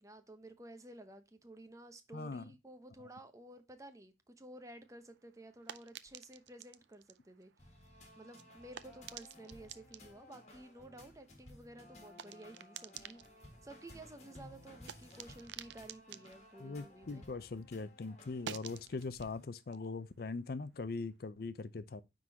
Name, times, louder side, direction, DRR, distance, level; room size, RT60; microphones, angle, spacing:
voice 1, 0.0-7.5 7.8-17.2, right 1 dB, 20° right, 0.8 m, -53 dB
voice 2, 2.1-2.4 16.6-22.0, left 3 dB, 55° left, 0.5 m, -41 dB
sound 1, 4.8-17.6 17.9-21.1, right 9 dB, 80° right, 0.5 m, -53 dB
sound 2, 7.6-19.5, left 1 dB, 40° left, 1.8 m, -57 dB
9.4 x 3.9 x 2.7 m
head